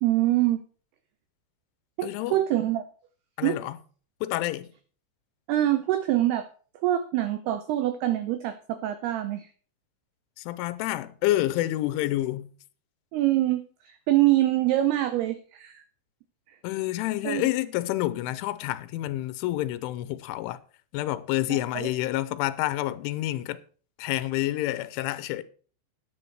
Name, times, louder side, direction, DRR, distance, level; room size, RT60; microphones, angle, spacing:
voice 1, 0.0-0.6 2.0-2.8 3.4-3.6 5.5-6.5 6.8-9.5 13.1-15.8 16.5-16.6 17.2-17.5 21.5-21.9, right 14 dB, 85° right, 2.2 m, -25 dB
voice 2, 2.0-2.4 3.4-3.8 4.2-4.7 10.4-12.5 16.6-20.6 20.9-23.6 24.0-25.4, left 15 dB, 90° left, 3.1 m, -28 dB
9.7 x 9.6 x 4.6 m
omnidirectional pair, 5.5 m